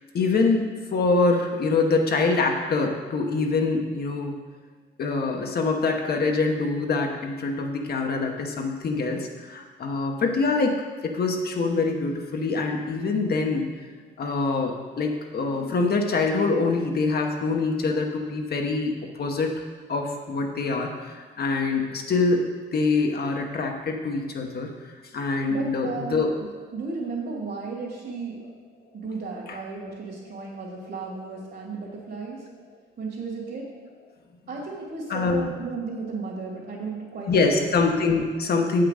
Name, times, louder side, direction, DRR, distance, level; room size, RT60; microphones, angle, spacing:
voice 1, 0.1-4.3 5.0-10.7 11.0-13.7 14.2-18.9 19.2-19.5 19.9-22.4 22.7-24.7 25.1-26.3 29.5-29.6 35.1-35.5 37.3-38.9, left 3 dB, 50° left, 2 dB, 1.1 m, -24 dB
voice 2, 25.5-26.5 26.7-28.5 28.9-32.5 33.0-33.7 34.5-38.0, right 4 dB, 55° right, -3 dB, 2.6 m, -34 dB
7.8 x 5.8 x 5.0 m, 1.4 s
cardioid pair, 90°, 20 cm